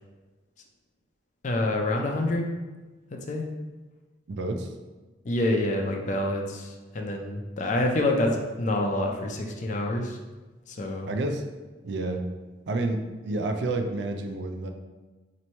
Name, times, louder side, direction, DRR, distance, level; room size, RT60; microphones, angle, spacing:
voice 1, 1.4-2.5 3.1-3.4 5.2-10.2 10.7-11.1, left 1 dB, 45° left, 2 dB, 0.5 m, -27 dB
voice 2, 4.3-4.7 11.1-11.5 11.8-12.3 12.7-14.7, right 2 dB, 70° right, 5 dB, 0.4 m, -29 dB
3.0 x 2.6 x 4.3 m, 1.2 s
head